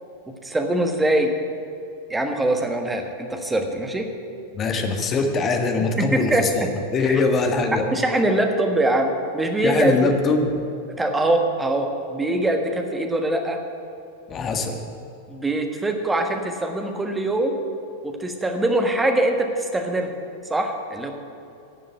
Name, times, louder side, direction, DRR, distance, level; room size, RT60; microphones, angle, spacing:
voice 1, 0.3-1.3 2.1-4.1 6.0-6.7 7.1-7.2 7.9-10.1 11.0-13.6 15.3-17.6 18.0-20.1 20.5-21.1, right 1 dB, 10° right, 4 dB, 1.5 m, -23 dB
voice 2, 4.5-6.6 6.9-7.8 9.6-10.6 14.3-14.8, left 3 dB, 25° left, 4 dB, 1.5 m, -22 dB
12.0 x 7.4 x 9.7 m, 2.7 s
figure-of-eight pair, 90°, 0 cm